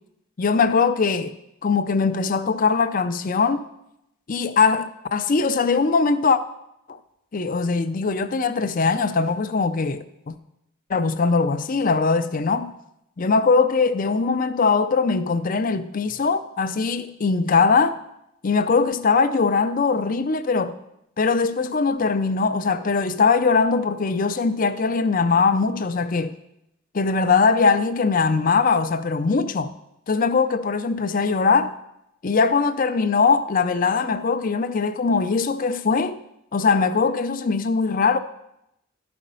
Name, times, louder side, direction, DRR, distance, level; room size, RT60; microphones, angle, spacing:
voice 1, 0.4-1.3 1.6-3.6 4.3-6.4 6.9-7.0 7.3-10.3 10.9-12.7 13.2-18.0 18.4-20.7 21.2-26.3 26.9-29.7 30.1-31.7 32.2-36.2 36.5-38.2, left 4 dB, 40° left, 0.5 m, -21 dB
12.0 x 5.1 x 5.5 m
head